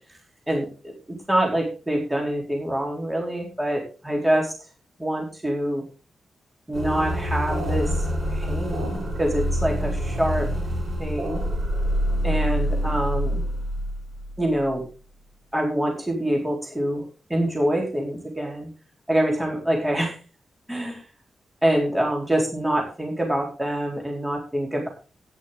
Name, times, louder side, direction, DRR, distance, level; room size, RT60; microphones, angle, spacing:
voice 1, 0.5-0.9 1.3-4.5 5.0-5.8 6.7-7.9 8.3-10.5 11.0-11.4 12.2-13.4 14.4-14.8 15.5-18.7 19.1-20.2 20.7-21.0 21.6-24.9, right 1 dB, 10° right, 0 dB, 4.1 m, -25 dB
sound 1, 6.7-14.7, equal, 40° right, 6.7 m, -26 dB
14.5 x 9.9 x 3.9 m, 0.33 s
wide cardioid pair, 145°, 0 cm